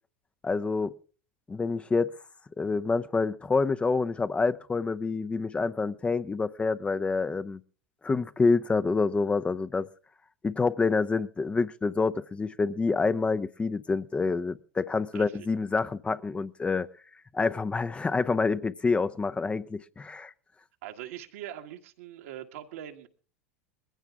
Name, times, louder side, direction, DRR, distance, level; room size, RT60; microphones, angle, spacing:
voice 1, 0.4-0.9 1.5-2.1 2.6-7.6 8.0-9.9 10.4-16.9 17.3-20.3, left 4 dB, 15° left, 0.6 m, -27 dB
voice 2, 20.8-23.1, right 11 dB, 70° right, 1.7 m, -42 dB
21.0 x 15.5 x 3.6 m
hypercardioid pair, 95°, 7 cm